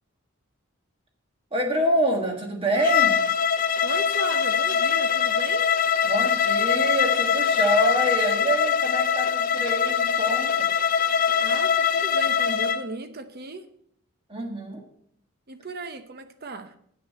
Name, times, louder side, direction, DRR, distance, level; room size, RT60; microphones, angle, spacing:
voice 1, 1.5-3.2 6.0-10.7 14.3-14.8, right 1 dB, 25° right, 2 dB, 1.5 m, -26 dB
Bowed string instrument, 2.8-12.8, left 7 dB, 40° left, 0.4 m, -23 dB
voice 2, 3.8-5.7 11.4-13.7 15.5-16.8, right 3 dB, 45° right, 10 dB, 0.8 m, -36 dB
8.3 x 6.6 x 6.6 m, 0.68 s
head